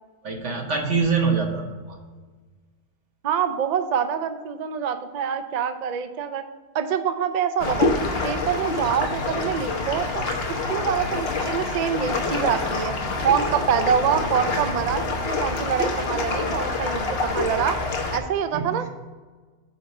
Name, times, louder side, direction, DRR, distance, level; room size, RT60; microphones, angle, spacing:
voice 1, 0.2-2.0 18.5-18.8, right 5 dB, 85° right, 2 dB, 1.4 m, -24 dB
voice 2, 3.2-6.4 6.7-7.9 8.2-10.3 10.7-12.9 13.2-17.8 18.1-18.9, right 7 dB, 55° right, 9 dB, 0.5 m, -25 dB
sound 1, 7.6-18.2, left 3 dB, 60° left, 1.1 m, -26 dB
8.7 x 3.0 x 6.3 m, 1.4 s
omnidirectional pair, 1.2 m